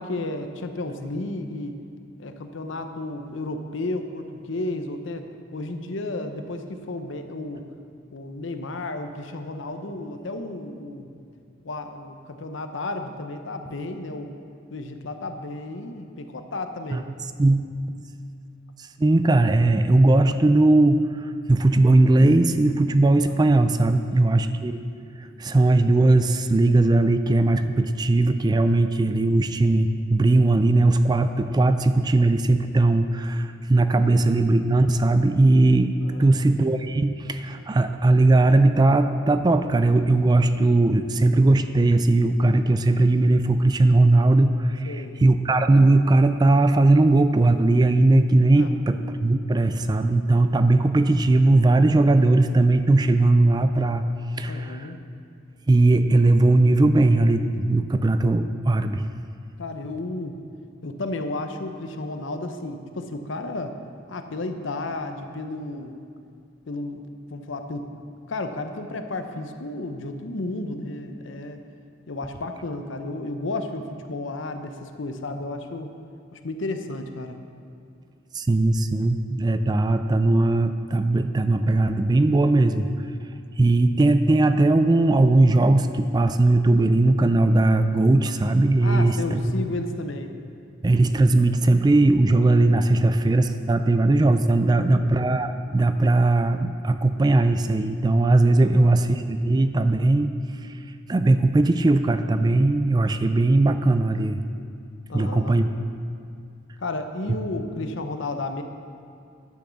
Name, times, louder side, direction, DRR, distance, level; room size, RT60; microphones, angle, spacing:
voice 1, 0.0-1.8 2.2-7.6 8.1-11.1 11.6-14.3 14.7-17.1 23.3-23.7 36.0-36.4 44.8-45.2 48.5-48.8 54.5-55.0 59.6-60.4 60.8-63.8 64.1-66.0 66.7-67.9 68.3-71.6 72.1-76.0 76.3-77.4 88.8-90.3 94.6-95.1 98.7-98.9 105.1-105.6 106.8-108.6, left 2 dB, 70° left, 7 dB, 0.8 m, -33 dB
voice 2, 19.0-24.8 25.2-35.9 36.2-54.0 54.4-54.9 55.7-59.0 78.3-82.9 83.6-89.4 90.8-100.3 101.1-104.4 105.1-105.7, right 2 dB, 20° right, 10 dB, 0.3 m, -19 dB
10.0 x 6.2 x 6.9 m, 2.3 s
head